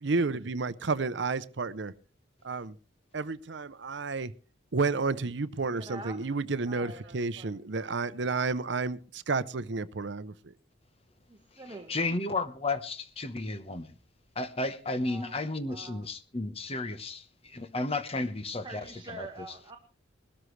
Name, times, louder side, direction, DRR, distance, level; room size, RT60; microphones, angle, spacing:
voice 1, 0.0-1.9 2.4-2.7 3.1-4.3 4.7-10.3, right 4 dB, 60° right, 0.7 m, -31 dB
voice 2, 5.8-6.2 6.7-7.6 11.3-12.0 15.0-16.0 18.6-19.8, right 2 dB, 25° right, 1.4 m, -45 dB
voice 3, 11.9-13.9 14.4-19.3, left 2 dB, 30° left, 1.1 m, -33 dB
20.5 x 13.0 x 3.2 m
head